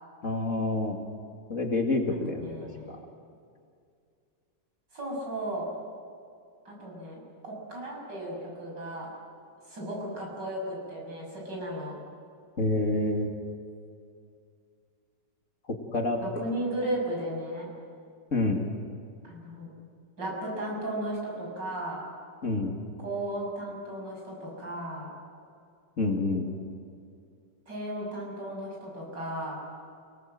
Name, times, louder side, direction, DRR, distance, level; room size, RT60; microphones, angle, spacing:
voice 1, 0.2-1.0 1.5-2.5 2.9-3.0 12.6-13.3 15.9-16.2 18.3-18.6 22.4-22.8 26.0-26.5, left 2 dB, 45° left, 2 dB, 2.6 m, -27 dB
voice 2, 2.3-3.0 4.9-5.7 6.7-9.1 9.7-12.0 16.2-17.7 19.2-19.7 20.2-22.0 23.0-25.1 27.7-29.6, right 1 dB, 75° right, -2 dB, 7.6 m, -35 dB
29.0 x 18.5 x 7.7 m, 2.3 s
omnidirectional pair, 1.9 m